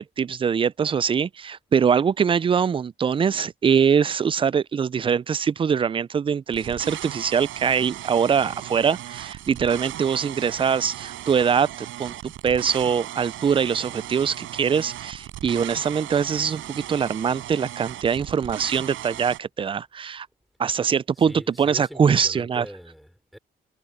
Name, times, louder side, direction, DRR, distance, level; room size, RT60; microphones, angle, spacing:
voice 1, 0.0-11.7 12.0-20.3 20.6-22.7, right 7 dB, 25° right, 0.3 m, -23 dB
sound 1, 6.5-19.4, right 13 dB, 80° right, 7.1 m, -37 dB
voice 2, 21.2-23.4, equal, ahead, 5.1 m, -41 dB
cardioid pair, 90°, 20 cm